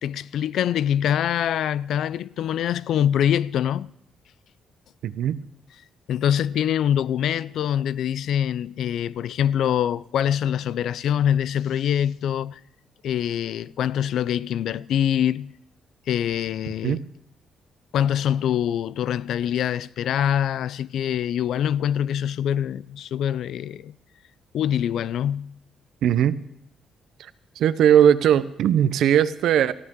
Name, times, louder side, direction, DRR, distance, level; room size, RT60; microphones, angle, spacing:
voice 1, 0.0-3.9 6.1-12.6 13.0-15.5 16.1-17.0 17.9-23.9 24.5-25.6, left 10 dB, 75° left, 0.4 m, -24 dB
voice 2, 5.0-5.4 16.8-17.0 26.0-26.4 27.2-27.3 27.6-29.7, right 9 dB, 75° right, 0.7 m, -19 dB
18.5 x 14.5 x 3.8 m
cardioid pair, 90°, 0 cm